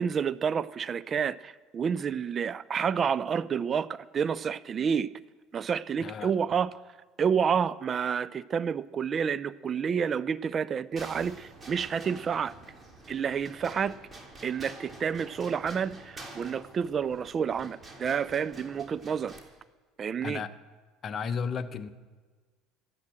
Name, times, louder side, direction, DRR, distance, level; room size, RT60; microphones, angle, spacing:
voice 1, 0.0-5.1 5.5-6.8 7.2-12.5 13.1-13.9 14.4-19.3 20.0-20.4, right 7 dB, 40° right, 0.5 m, -29 dB
voice 2, 6.0-6.3 20.2-20.5 21.0-21.9, left 6 dB, 40° left, 0.9 m, -33 dB
sound 1, 11.0-19.4, right 2 dB, 25° right, 3.4 m, -48 dB
13.0 x 11.0 x 7.8 m
hypercardioid pair, 70°, 0 cm